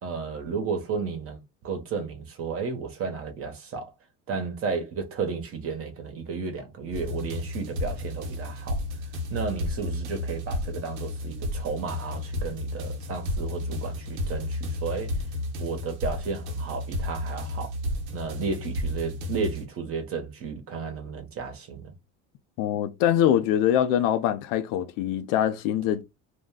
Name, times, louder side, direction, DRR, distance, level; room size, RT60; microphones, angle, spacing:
voice 1, 0.0-3.9 4.3-8.8 9.3-15.1 15.6-17.7 18.1-21.9, right 5 dB, 45° right, 1.0 m, -33 dB
sound 1, 6.9-19.7, left 1 dB, 85° right, 1.0 m, -32 dB
voice 2, 22.6-26.0, left 10 dB, 80° left, 0.6 m, -23 dB
2.5 x 2.2 x 3.6 m
supercardioid pair, 100°, 32 cm